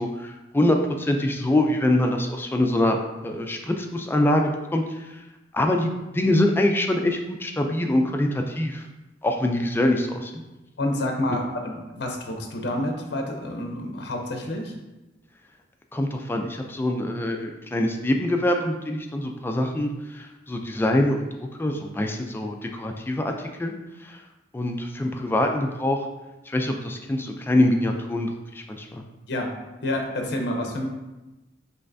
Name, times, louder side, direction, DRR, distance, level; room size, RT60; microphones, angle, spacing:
voice 1, 0.0-3.0 3.2-5.1 5.5-8.8 9.2-10.4 15.9-21.3 21.6-23.7 24.0-24.2 24.5-26.0 26.5-29.0, left 1 dB, 10° left, 3 dB, 0.3 m, -24 dB
voice 2, 10.8-14.7 29.3-29.5 29.8-30.9, left 1 dB, 65° left, 3 dB, 0.7 m, -28 dB
5.5 x 3.2 x 2.6 m, 1.1 s
head